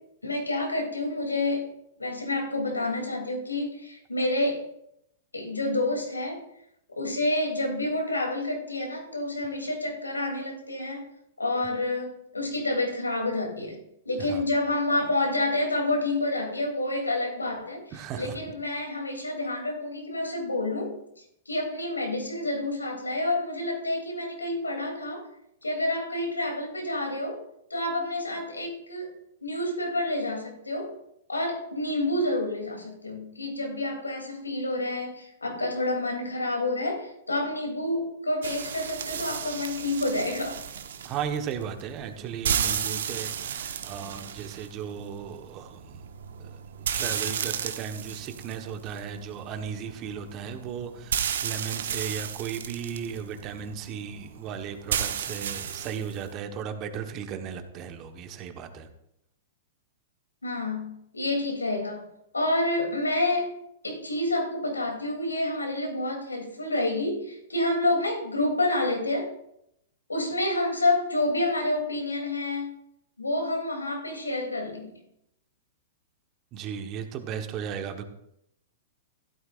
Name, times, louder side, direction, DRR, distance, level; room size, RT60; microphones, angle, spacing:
voice 1, 0.2-4.6 5.3-6.4 7.0-11.1 11.4-13.8 14.0-17.8 18.1-20.9 21.4-25.3 25.6-27.4 27.7-29.1 29.4-30.9 31.3-40.6 60.4-62.1 62.3-63.5 63.8-69.3 70.1-72.7 73.2-74.9, left 2 dB, 85° left, 1 dB, 3.1 m, -28 dB
voice 2, 17.9-18.5 41.0-46.0 46.4-58.9 76.5-78.0, right 7 dB, 35° right, 7 dB, 1.3 m, -36 dB
sound 1, 38.4-56.3, right 8 dB, 65° right, 1.2 m, -34 dB
15.5 x 12.5 x 2.6 m, 0.77 s
figure-of-eight pair, 105°, 0 cm